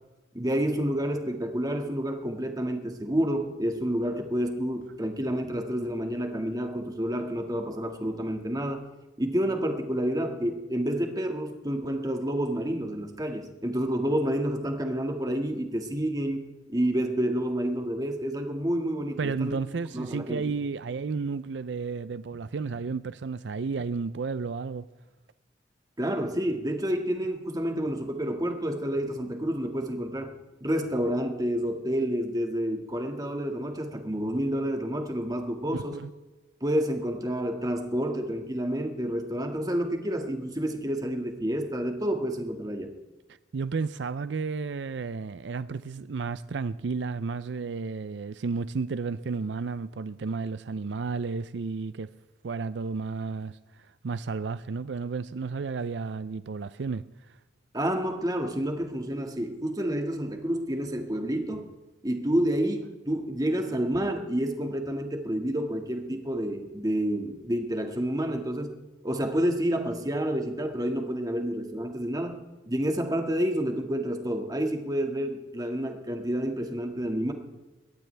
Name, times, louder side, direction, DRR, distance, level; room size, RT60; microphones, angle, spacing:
voice 1, 0.3-8.8 9.2-19.6 19.9-20.4 26.0-30.3 30.6-36.0 36.6-42.9 57.7-61.7 62.0-68.7 69.0-77.3, equal, 20° right, 1.9 m, -29 dB
voice 2, 19.2-24.9 35.7-36.1 43.5-52.1 52.4-57.4, right 4 dB, 75° right, 0.5 m, -32 dB
22.0 x 18.0 x 3.4 m
head